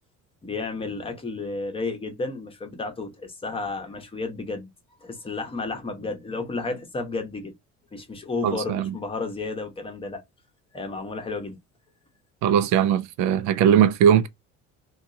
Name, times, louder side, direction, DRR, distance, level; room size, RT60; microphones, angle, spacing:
voice 1, 0.4-7.5 7.9-10.2 10.7-11.6, left 3 dB, 20° left, 0.8 m, -32 dB
voice 2, 8.4-8.9 12.4-14.3, right 9 dB, 70° right, 0.5 m, -19 dB
2.9 x 2.4 x 3.7 m
cardioid pair, 140°, 29 cm